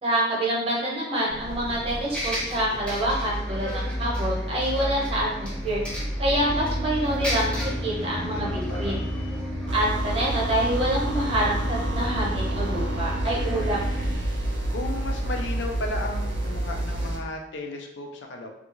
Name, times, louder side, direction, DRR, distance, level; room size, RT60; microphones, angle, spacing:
voice 1, 0.0-5.8 6.2-8.5 8.8-9.0 9.7-13.8, right 1 dB, 30° right, -4 dB, 0.8 m, -26 dB
Bus, 1.3-17.1, equal, 5° left, 0.7 m, -33 dB
sound 1, 6.4-14.1, left 1 dB, 40° left, 0.7 m, -34 dB
voice 2, 8.0-9.0 14.7-18.5, left 2 dB, 75° left, 2 dB, 0.4 m, -35 dB
sound 2, 9.7-17.2, right 1 dB, 80° right, 0.5 m, -29 dB
2.4 x 2.3 x 2.9 m, 0.82 s
head